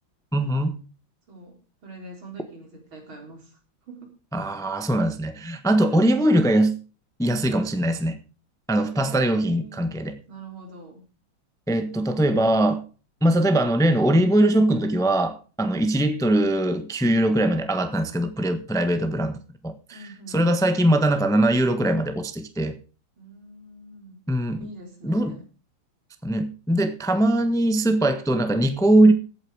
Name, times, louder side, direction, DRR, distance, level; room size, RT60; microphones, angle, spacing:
voice 1, 0.3-0.7 4.3-6.7 7.2-8.2 8.7-10.2 11.7-12.8 13.2-20.0 20.3-22.8 24.3-24.7 25.0-25.3 26.2-29.1, right 1 dB, ahead, 1.0 m, -21 dB
voice 2, 1.3-3.6 3.9-4.1 5.8-6.4 8.9-9.9 10.3-11.0 19.0-19.5 19.9-20.4 23.2-24.3 24.6-25.4, right 2 dB, 80° right, 4.6 m, -45 dB
15.5 x 9.0 x 4.9 m
omnidirectional pair, 2.2 m